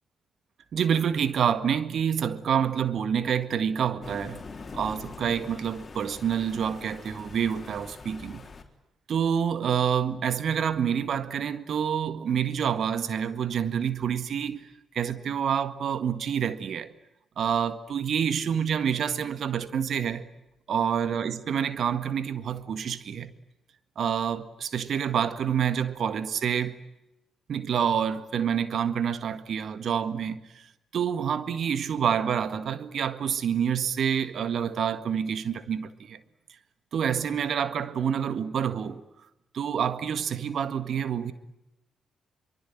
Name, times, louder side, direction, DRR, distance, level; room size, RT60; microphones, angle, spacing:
voice 1, 0.7-4.4 4.7-8.5 9.1-14.7 14.9-16.9 17.4-20.3 20.7-23.3 24.0-26.7 27.5-30.4 30.9-36.2 36.9-39.0 39.5-41.3, right 8 dB, 60° right, 1.7 m, -27 dB
Thunder, 4.0-8.6, left 4 dB, 40° left, 3.8 m, -43 dB
25.0 x 24.0 x 9.1 m
hypercardioid pair, 45°, 0 cm